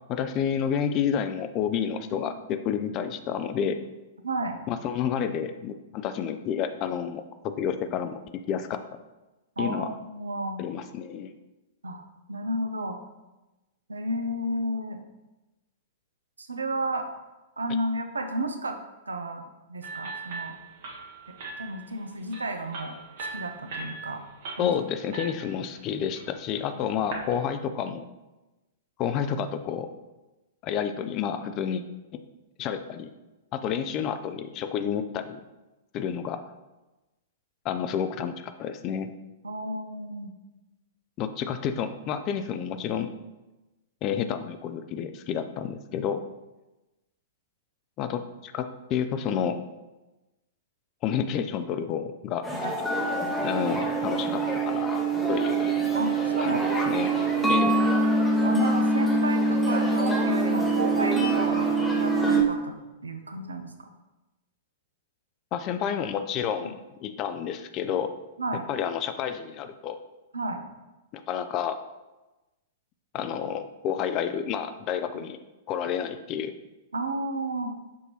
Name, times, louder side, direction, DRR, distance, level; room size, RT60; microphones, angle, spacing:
voice 1, 0.1-3.8 4.7-8.2 8.5-8.8 9.6-9.9 10.6-11.3 24.6-28.1 29.0-29.9 30.6-31.8 32.1-32.2 32.6-33.1 33.5-35.4 35.9-36.4 37.6-39.1 41.2-43.1 44.0-46.2 48.0-49.6 51.0-52.5 53.4-55.0 55.3-55.7 56.4-57.1 57.5-57.8 65.5-68.2 68.7-70.0 71.1-71.8 73.1-75.4 75.7-76.6, left 8 dB, 35° left, 10 dB, 0.3 m, -30 dB
voice 2, 4.2-4.6 9.6-10.6 11.8-13.0 13.9-15.0 16.4-17.1 17.6-18.8 19.1-20.5 21.6-22.9 23.3-24.2 24.6-24.7 39.4-40.3 52.6-52.8 55.9-56.7 57.4-57.7 58.4-62.7 63.0-63.9 66.6-66.7 68.4-68.6 70.3-70.6 76.9-77.7, right 1 dB, 80° right, 6 dB, 0.4 m, -32 dB
sound 1, 19.8-27.3, right 4 dB, 55° right, 0.9 m, -40 dB
sound 2, 52.4-62.4, right 2 dB, 10° left, 0.7 m, -24 dB
5.9 x 2.6 x 2.9 m, 1.1 s
figure-of-eight pair, 105°, 0 cm